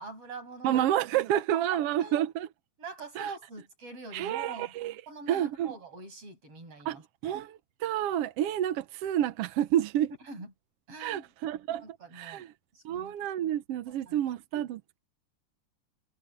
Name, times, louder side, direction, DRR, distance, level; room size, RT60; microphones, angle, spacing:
voice 1, 0.0-0.9 1.3-2.2 2.8-4.7 5.1-7.3 10.2-10.5 10.9-11.2 11.8-12.5 12.7-13.2 13.9-14.2, right 4 dB, 50° right, 8.6 m, -44 dB
voice 2, 0.6-2.5 3.1-3.3 4.1-4.9 5.3-5.7 6.8-7.0 7.2-10.1 11.0-11.8 12.1-12.5 12.8-15.0, right 11 dB, 70° right, 1.6 m, -29 dB
omnidirectional pair, 3.3 m